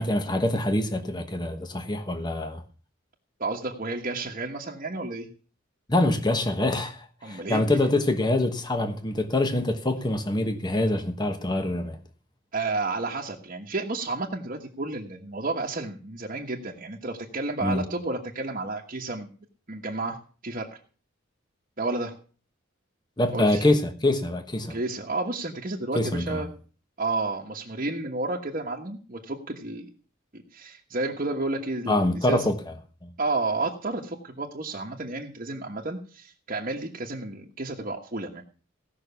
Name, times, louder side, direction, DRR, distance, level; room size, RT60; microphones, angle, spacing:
voice 1, 0.0-2.6 5.9-12.0 17.6-17.8 23.2-24.8 25.9-26.4 31.9-32.6 33.0-33.1, left 1 dB, 20° left, 1.2 m, -25 dB
voice 2, 3.4-5.3 7.2-7.6 12.5-19.3 19.7-20.2 20.4-20.8 21.8-22.1 23.3-23.7 24.7-26.5 27.0-29.9 30.3-32.5 33.2-38.4, right 3 dB, 40° right, 1.3 m, -31 dB
17.0 x 6.2 x 6.9 m
head